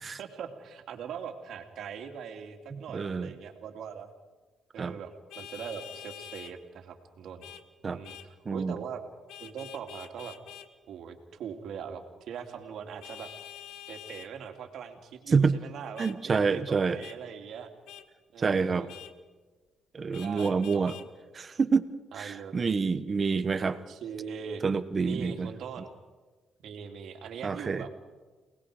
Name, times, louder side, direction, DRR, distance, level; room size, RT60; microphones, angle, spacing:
voice 1, 0.2-4.1 4.7-5.1 5.4-7.5 7.8-9.0 9.4-10.4 10.9-13.3 13.9-17.7 18.3-18.9 20.2-21.0 22.1-22.7 23.6-24.6 25.0-25.9 26.6-27.9, right 7 dB, 75° right, 5 dB, 2.6 m, -41 dB
voice 2, 2.7-3.3 4.8-4.9 7.8-8.0 8.4-8.7 15.3-15.6 16.0-17.0 18.4-18.9 19.9-20.9 21.4-21.8 22.2-23.8 24.6-25.5 27.4-27.8, right 5 dB, 40° right, 13 dB, 1.2 m, -27 dB
Vehicle horn car horn honking, 5.3-6.5 7.4-7.6 8.0-8.3 9.3-10.7 13.0-14.3 16.0-16.2 17.0-17.2 17.9-18.1 18.9-19.1 20.1-21.1, left 10 dB, 85° left, 1.2 m, -46 dB
29.5 x 19.5 x 5.0 m, 1.3 s
cardioid pair, 90°, 0 cm